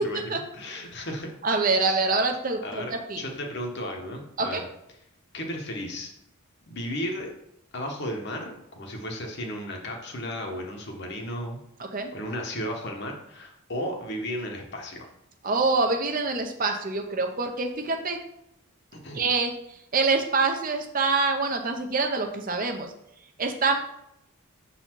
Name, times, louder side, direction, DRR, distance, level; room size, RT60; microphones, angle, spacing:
voice 1, 0.0-1.3 1.8-2.0 2.6-4.6 5.3-6.1 6.7-7.3 7.7-15.1 18.9-19.2, equal, 50° left, 2 dB, 1.2 m, -34 dB
voice 2, 1.4-3.2 4.4-4.6 11.9-12.1 15.4-18.2 19.1-19.5 19.9-22.9 23.4-23.8, right 3 dB, 40° right, 5 dB, 0.7 m, -25 dB
6.9 x 4.1 x 4.5 m, 0.80 s
head